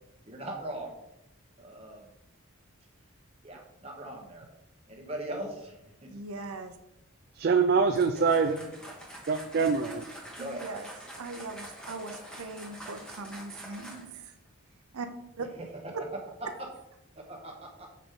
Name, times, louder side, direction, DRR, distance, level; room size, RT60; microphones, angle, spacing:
voice 1, 0.2-0.9 1.6-2.0 3.4-4.4 4.9-5.7 6.0-6.1 10.4-10.9 17.3-17.9, right 1 dB, 25° right, 0 dB, 1.2 m, -40 dB
voice 2, 6.1-6.7 10.4-10.9 11.2-14.3 14.9-15.1 15.4-15.5, right 3 dB, 85° right, 7 dB, 0.6 m, -40 dB
voice 3, 7.3-8.6 9.3-10.1, right 5 dB, 45° right, 7 dB, 0.3 m, -24 dB
sound 1, 7.9-14.2, right 1 dB, 5° left, 1.2 m, -46 dB
6.7 x 4.9 x 3.8 m, 0.87 s
head